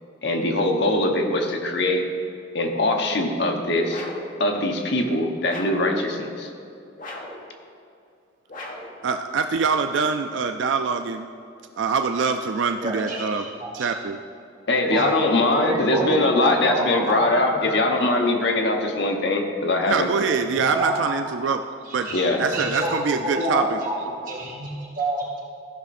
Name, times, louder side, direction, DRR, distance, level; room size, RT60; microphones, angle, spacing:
voice 1, 0.2-2.1 2.5-4.0 4.4-6.5 14.7-20.1 22.1-22.4, left 2 dB, 60° left, 3 dB, 1.0 m, -22 dB
sound 1, 3.9-4.3 5.4-5.9 7.0-7.4 8.5-9.0, left 1 dB, 45° left, 1.3 m, -37 dB
voice 2, 9.0-11.3 11.8-13.4 13.7-14.2 19.9-21.6 21.9-22.1 22.4-23.8, right 5 dB, 70° right, 7 dB, 0.4 m, -24 dB
voice 3, 12.8-13.9 14.9-15.1 15.5-17.3 17.5-17.7 20.6-21.2 21.8-25.4, right 1 dB, 45° right, -6 dB, 2.7 m, -28 dB
14.5 x 5.7 x 4.2 m, 2.5 s
head